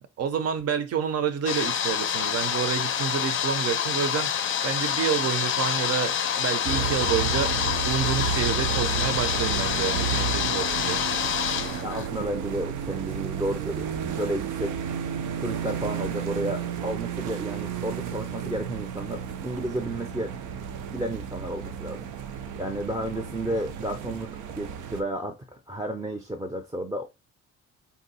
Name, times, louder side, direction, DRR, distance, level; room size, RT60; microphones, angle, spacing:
voice 1, 0.2-7.5 7.8-11.0, right 8 dB, 55° right, 0.7 m, -29 dB
sound 1, 1.5-12.1, left 8 dB, 45° left, 0.5 m, -27 dB
sound 2, 6.7-25.0, right 7 dB, 90° right, 0.5 m, -32 dB
voice 2, 11.8-14.8 15.4-22.3 22.6-27.1, right 1 dB, 10° right, 0.6 m, -32 dB
2.7 x 2.2 x 4.0 m
cardioid pair, 90°, 30 cm